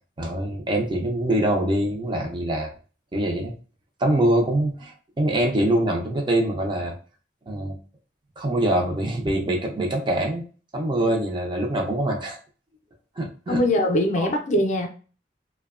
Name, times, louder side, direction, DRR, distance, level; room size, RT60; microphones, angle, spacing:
voice 1, 0.2-2.7 3.1-3.5 4.0-6.9 7.5-7.7 8.4-10.4 10.7-12.4 13.2-13.6 14.2-14.3, right 1 dB, 25° right, 0.4 m, -24 dB
voice 2, 13.5-14.9, left 1 dB, 40° left, 0.4 m, -22 dB
2.6 x 2.1 x 2.4 m
head